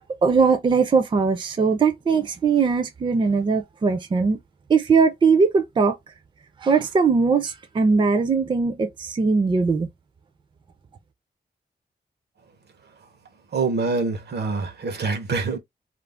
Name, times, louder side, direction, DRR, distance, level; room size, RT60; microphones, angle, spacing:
voice 1, 0.2-4.4 4.7-6.0 6.6-9.9, right 5 dB, 30° right, 0.4 m, -20 dB
voice 2, 13.5-15.6, right 4 dB, 80° right, 0.7 m, -25 dB
2.4 x 2.0 x 3.3 m
wide cardioid pair, 165°, 17 cm